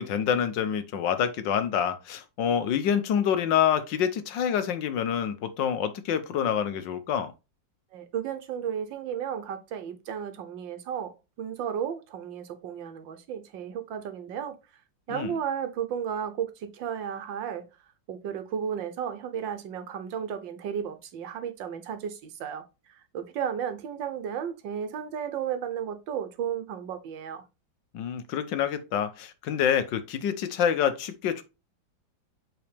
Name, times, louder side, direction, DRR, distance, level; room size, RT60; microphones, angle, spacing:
voice 1, 0.0-7.3 15.1-15.3 27.9-31.4, left 8 dB, 75° left, 1.5 m, -27 dB
voice 2, 7.9-14.6 15.1-17.7 18.1-22.6 22.9-27.4, right 8 dB, 80° right, 1.6 m, -34 dB
7.9 x 4.0 x 3.4 m
omnidirectional pair, 2.0 m